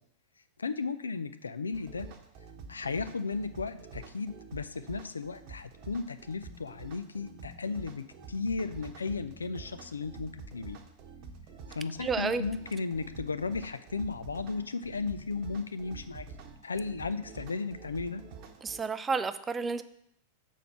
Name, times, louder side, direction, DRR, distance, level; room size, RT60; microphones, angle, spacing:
voice 1, 0.6-2.1 2.7-10.8 11.7-16.3 16.6-18.2, left 4 dB, 75° left, 12 dB, 0.4 m, -35 dB
sound 1, 1.7-18.8, right 4 dB, 40° right, 0.9 m, -48 dB
voice 2, 12.0-12.4 18.6-19.8, right 4 dB, 15° right, 12 dB, 0.4 m, -31 dB
7.0 x 4.6 x 5.8 m, 0.74 s
figure-of-eight pair, 90°, 0 cm